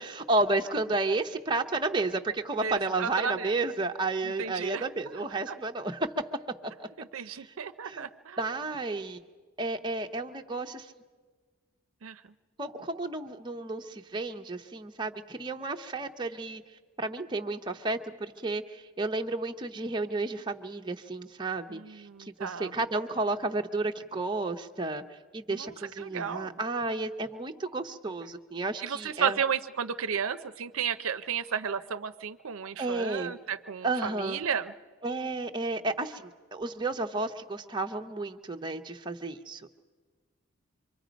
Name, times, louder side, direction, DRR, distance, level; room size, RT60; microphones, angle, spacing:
voice 1, 0.0-6.1 7.2-7.5 7.8-8.1 8.4-9.2 9.6-10.9 12.6-16.6 17.0-25.0 25.3-29.4 32.8-33.3 33.8-34.4 35.0-39.7, right 2 dB, 20° right, 4 dB, 0.7 m, -32 dB
voice 2, 2.6-3.5 4.2-4.8 5.5-5.6 7.0-8.4 12.0-12.2 21.7-22.7 25.5-26.6 28.8-34.7, right 7 dB, 70° right, 11 dB, 0.6 m, -33 dB
26.0 x 23.5 x 5.1 m, 1.4 s
head